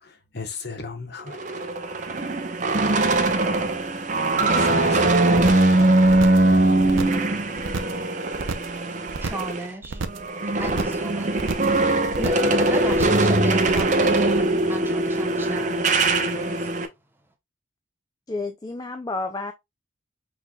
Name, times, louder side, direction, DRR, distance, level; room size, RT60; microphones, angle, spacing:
voice 1, 0.0-1.4 4.5-5.9, left 4 dB, 55° left, 1.1 m, -36 dB
sound 1, 1.3-9.7 10.0-16.9, right 2 dB, 40° right, 0.7 m, -21 dB
sound 2, 5.3-5.7 6.0-6.5 6.8-7.3 7.6-8.0 8.3-8.8 9.1-9.5 9.8-10.3 10.6-11.1 11.4-11.8 12.1-12.5 12.8-13.3 13.6-14.1 14.4-14.5, right 3 dB, 80° right, 0.6 m, -30 dB
voice 2, 9.2-10.0 10.4-11.5 12.2-15.7 16.0-16.6, right 2 dB, 10° right, 0.8 m, -35 dB
voice 3, 18.3-19.5, left 3 dB, 20° left, 0.4 m, -30 dB
5.9 x 3.4 x 2.3 m
head